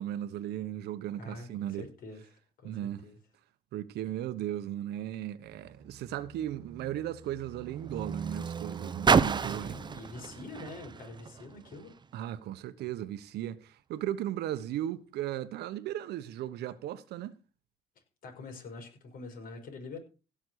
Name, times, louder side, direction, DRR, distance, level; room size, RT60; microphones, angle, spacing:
voice 1, 0.0-1.9 2.6-3.1 3.7-9.8 12.1-17.4, right 12 dB, 75° right, 1.2 m, -36 dB
voice 2, 1.2-2.2 2.6-3.2 9.5-11.9 18.2-20.0, left 3 dB, 55° left, 5.8 m, -45 dB
Car, 5.5-12.1 12.9-13.0, right 5 dB, 25° right, 0.8 m, -32 dB
16.5 x 6.4 x 6.5 m
cardioid pair, 110°, 17 cm